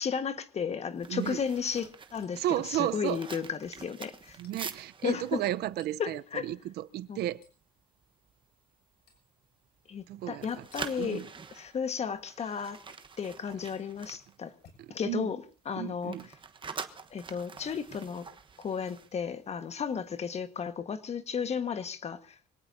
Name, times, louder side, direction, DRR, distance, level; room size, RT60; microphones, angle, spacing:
voice 1, 0.0-4.4 5.0-5.4 6.0-6.5 7.1-7.2 9.9-11.2 11.5-12.8 13.2-14.5 14.9-16.2 17.1-18.3 18.6-22.4, left 6 dB, 40° left, 1.5 m, -34 dB
sound 1, 0.9-7.1 7.4-7.6 8.0-8.3 8.8-10.1 10.3-15.1 15.3-19.9 20.1-20.4, right 5 dB, 30° right, 1.2 m, -46 dB
Hammer, 2.2-2.8 3.1-3.3 3.7-3.9 4.4-4.6 5.8-6.1 7.4-7.6 9.1-9.3 10.7-10.9 12.9-13.0 14.5-15.3 16.0-16.2 17.4-17.6 18.5-18.7 20.3-20.4, left 5 dB, 70° left, 6.7 m, -61 dB
voice 2, 2.3-3.2 4.4-7.4 10.1-10.4 11.0-11.3 15.0-15.3 15.8-16.3, right 14 dB, 70° right, 0.8 m, -33 dB
25.0 x 18.0 x 2.7 m
cardioid pair, 110°, 17 cm